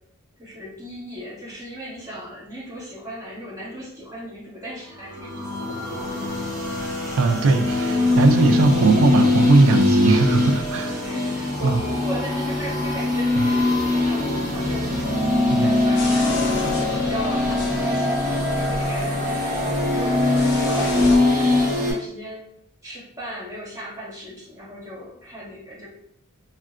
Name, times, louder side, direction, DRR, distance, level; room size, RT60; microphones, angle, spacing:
voice 1, 0.4-6.0 11.0-15.0 15.5-16.7 17.0-22.4 22.8-25.9, equal, 15° right, -9 dB, 1.4 m, -37 dB
sound 1, 5.0-21.9, left 2 dB, 40° right, 1.0 m, -22 dB
voice 2, 7.2-11.1 11.6-11.8 13.4-13.5 15.5-15.7, right 3 dB, 65° right, 6 dB, 0.4 m, -19 dB
sound 2, 15.0-21.8, left 2 dB, 15° left, 1.4 m, -29 dB
sound 3, 16.0-21.2, left 2 dB, 55° left, 0.6 m, -31 dB
3.6 x 2.2 x 2.4 m, 0.71 s
head